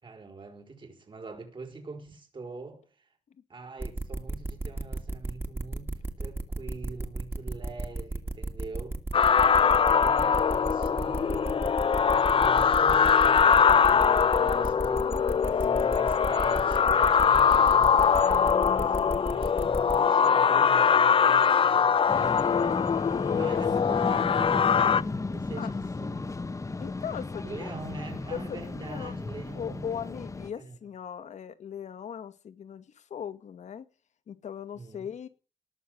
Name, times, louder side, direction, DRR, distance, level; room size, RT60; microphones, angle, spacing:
voice 1, 0.0-3.1 3.5-9.0 9.9-11.8 12.0-22.6 23.3-25.7 26.0-26.3 27.4-29.9 30.6-30.7 34.7-35.1, right 3 dB, 45° right, 5.0 m, -44 dB
sound 1, 3.8-20.0, right 2 dB, 20° right, 2.4 m, -34 dB
sound 2, 9.1-25.0, left 6 dB, 50° left, 0.7 m, -22 dB
sound 3, 22.1-30.5, left 3 dB, 25° left, 1.2 m, -35 dB
voice 2, 23.2-23.6 25.6-25.7 26.8-27.6 28.3-29.1 29.6-33.9 34.3-35.3, left 8 dB, 75° left, 2.0 m, -39 dB
19.5 x 7.1 x 8.1 m
cardioid pair, 100°, 12 cm